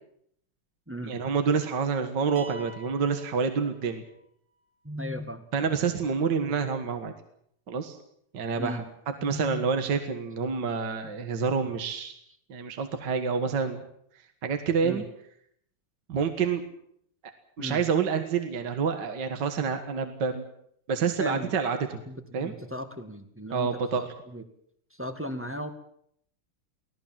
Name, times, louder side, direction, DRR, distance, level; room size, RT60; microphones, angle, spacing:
voice 1, 1.0-4.0 5.5-7.1 7.7-8.0 8.3-12.1 12.5-13.8 14.4-15.0 16.1-16.6 17.6-20.4 20.9-22.0 22.3-22.5 23.5-24.0, right 6 dB, 55° right, 7 dB, 2.2 m, -28 dB
sound 1, 2.4-4.3, right 1 dB, 85° right, 2.9 m, -47 dB
voice 2, 4.8-5.4 8.6-8.9 9.2-9.6 14.8-15.0 17.6-17.8 21.2-21.5 22.1-23.7 23.9-24.4 24.9-25.7, equal, 5° right, 7 dB, 1.6 m, -36 dB
24.5 x 17.5 x 7.5 m, 0.69 s
omnidirectional pair, 2.3 m